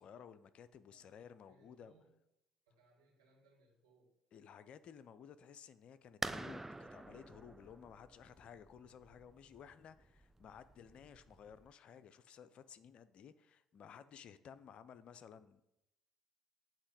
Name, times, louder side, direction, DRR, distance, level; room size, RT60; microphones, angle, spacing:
voice 1, 0.0-1.9 4.3-15.6, left 8 dB, 50° left, 13 dB, 0.4 m, -56 dB
voice 2, 0.7-1.2 1.5-2.2 2.7-4.1, right 2 dB, 80° right, -3 dB, 2.1 m, -71 dB
sound 1, 6.2-11.7, right 2 dB, 10° right, 0.3 m, -48 dB
8.1 x 3.0 x 5.1 m, 0.85 s
figure-of-eight pair, 50°, 2 cm